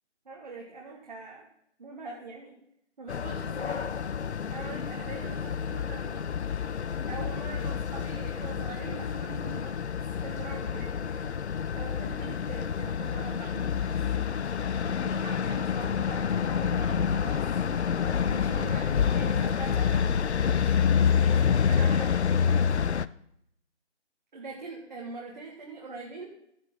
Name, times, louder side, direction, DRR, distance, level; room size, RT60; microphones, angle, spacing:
voice 1, 0.3-1.5 1.8-2.6 3.0-4.0 4.5-6.3 7.1-11.4 11.8-14.4 14.9-17.4 17.7-22.2 24.3-26.3, right 3 dB, 40° right, -2 dB, 1.8 m, -43 dB
sound 1, 3.1-23.1, left 7 dB, 70° left, 0.5 m, -28 dB
15.0 x 5.2 x 5.6 m, 0.74 s
figure-of-eight pair, 160°, 35 cm